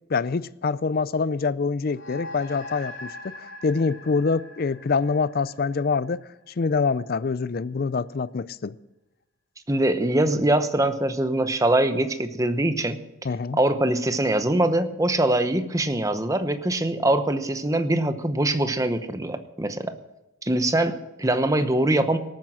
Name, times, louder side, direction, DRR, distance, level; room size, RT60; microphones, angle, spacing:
voice 1, 0.1-8.7 13.2-13.6, left 4 dB, 45° left, 0.4 m, -25 dB
sound 1, 1.9-6.6, left 2 dB, 75° left, 3.4 m, -42 dB
voice 2, 9.7-13.0 13.5-20.0 20.5-22.2, right 1 dB, 15° right, 0.8 m, -23 dB
18.5 x 9.1 x 6.2 m
head